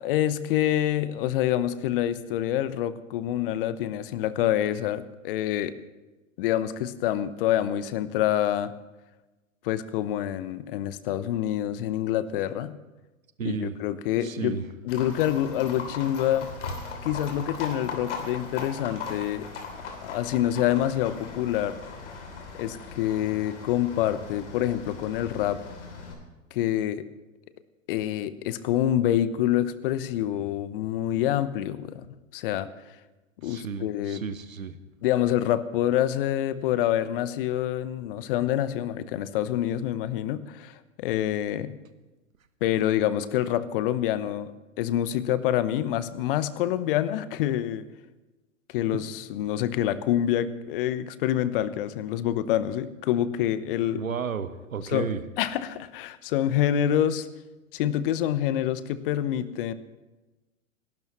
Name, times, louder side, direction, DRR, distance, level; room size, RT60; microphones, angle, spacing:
voice 1, 0.0-5.7 6.4-8.7 9.6-12.7 13.4-14.6 14.8-16.5 17.0-19.5 20.0-21.7 22.6-25.6 26.5-27.1 27.9-32.0 32.3-32.7 33.4-34.2 35.0-41.7 42.6-44.5 44.8-47.9 48.7-54.0 54.9-57.3 57.7-59.7, left 12 dB, 40° left, 15 dB, 0.9 m, -26 dB
voice 2, 13.4-13.8 14.2-14.6 33.4-34.7 53.9-55.2, right 7 dB, 80° right, 12 dB, 1.2 m, -33 dB
Livestock farm animals working animals, 14.9-26.1, left 4 dB, 55° left, 3.2 m, -39 dB
29.0 x 12.0 x 3.1 m, 1.1 s
figure-of-eight pair, 110°, 41 cm